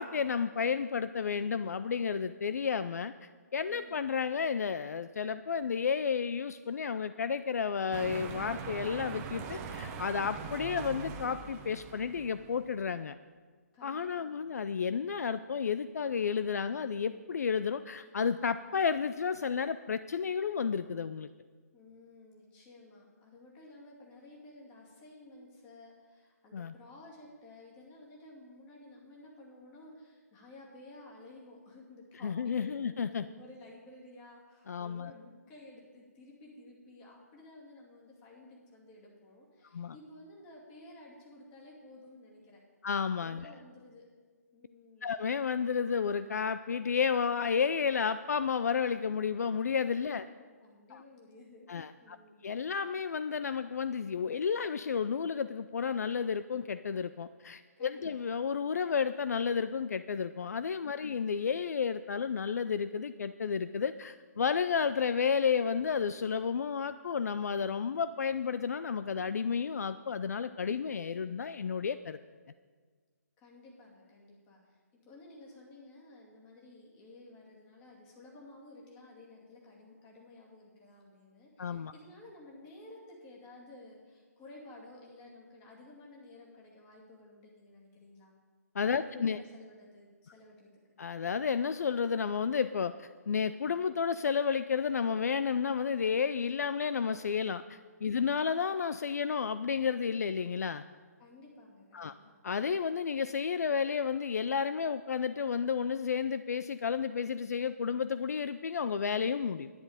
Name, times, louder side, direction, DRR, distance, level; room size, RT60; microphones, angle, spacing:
voice 1, 0.0-13.2 13.8-21.3 26.5-26.7 32.2-33.3 34.7-35.1 39.7-39.9 42.8-43.5 45.0-50.3 50.9-51.0 51.7-52.2 52.4-72.2 81.6-81.9 88.7-89.4 91.0-100.8 101.9-102.1 102.4-109.7, left 6 dB, 65° left, 13 dB, 0.4 m, -32 dB
voice 2, 3.7-4.0 13.7-14.5 21.7-42.6 43.2-44.1 44.5-45.2 50.4-52.4 57.8-58.2 73.4-88.3 89.0-90.7 98.1-98.4 101.2-102.3, left 2 dB, 20° left, -3 dB, 2.5 m, -54 dB
sound 1, 7.9-12.9, right 5 dB, 20° right, 0.8 m, -42 dB
10.5 x 10.0 x 5.1 m, 1.5 s
figure-of-eight pair, 145°, 9 cm